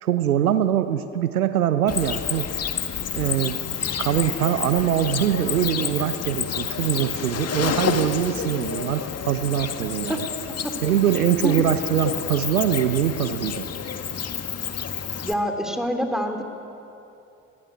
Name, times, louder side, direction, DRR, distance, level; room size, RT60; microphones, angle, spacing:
voice 1, 0.0-2.5 3.1-3.6 4.0-10.2 10.8-13.7, right 10 dB, 75° right, 11 dB, 1.0 m, -23 dB
Cricket, 1.9-15.3, left 7 dB, 35° left, 1.7 m, -29 dB
voice 2, 15.2-16.4, equal, ahead, 5 dB, 3.3 m, -26 dB
25.5 x 20.0 x 9.2 m, 2.9 s
figure-of-eight pair, 55°, 43 cm